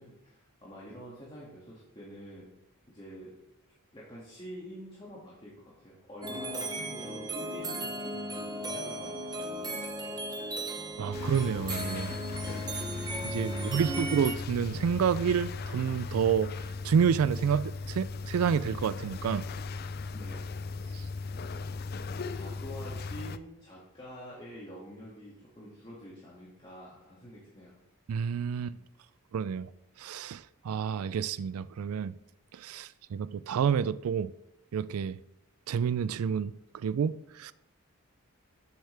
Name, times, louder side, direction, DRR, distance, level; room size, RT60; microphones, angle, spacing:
voice 1, 0.0-2.5 2.9-3.4 3.7-9.8 13.5-14.0 20.1-20.5 22.1-27.8, equal, 25° left, 2.1 m, -47 dB
sound 1, 6.2-14.4, right 1 dB, 20° right, 0.9 m, -36 dB
voice 2, 11.0-12.1 13.2-16.5 16.8-19.5 20.9-21.0 28.1-28.8 29.3-29.7 30.0-32.2 32.5-34.3 34.7-35.2 35.7-37.5, right 7 dB, 85° right, 0.3 m, -29 dB
sound 2, 11.1-23.4, left 4 dB, 45° left, 0.4 m, -37 dB
13.0 x 8.0 x 3.4 m
head